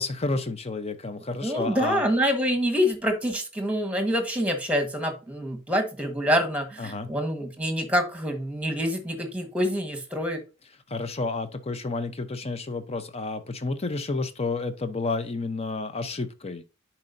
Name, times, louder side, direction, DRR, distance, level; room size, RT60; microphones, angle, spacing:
voice 1, 0.0-2.0 6.8-7.1 10.9-16.6, left 3 dB, 30° left, 0.8 m, -30 dB
voice 2, 1.4-10.4, equal, 5° right, 1.4 m, -26 dB
10.5 x 4.4 x 2.6 m
head